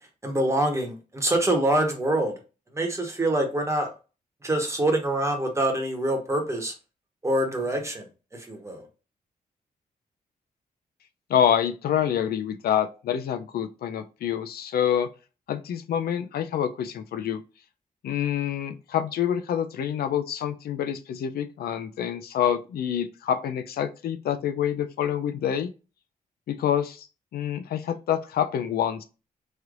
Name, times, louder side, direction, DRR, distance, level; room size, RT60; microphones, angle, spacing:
voice 1, 0.2-2.3 2.7-3.9 4.4-6.7 7.2-8.9, right 1 dB, 20° right, 1.2 m, -25 dB
voice 2, 11.3-15.1 15.5-17.4 18.0-25.7 26.5-27.1 27.3-29.0, left 9 dB, 80° left, 0.4 m, -27 dB
3.2 x 2.9 x 2.5 m
cardioid pair, 90°, 16 cm